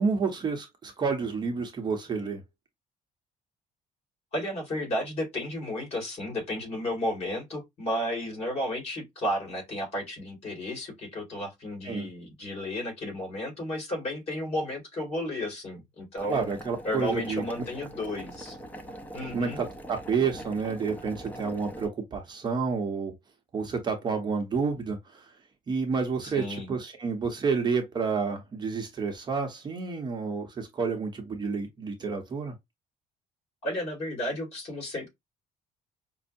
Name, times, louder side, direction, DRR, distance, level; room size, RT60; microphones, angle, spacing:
voice 1, 0.0-2.4 11.8-12.1 16.3-17.4 19.3-23.1 23.5-25.3 25.7-32.5, right 5 dB, 30° right, 0.8 m, -29 dB
voice 2, 4.3-16.4 16.8-18.6 19.1-19.6 26.2-26.7 33.6-35.1, left 1 dB, 45° left, 2.2 m, -33 dB
Boiling, 16.2-21.9, right 1 dB, 10° left, 0.5 m, -42 dB
5.3 x 2.0 x 2.5 m
cardioid pair, 155°, 15 cm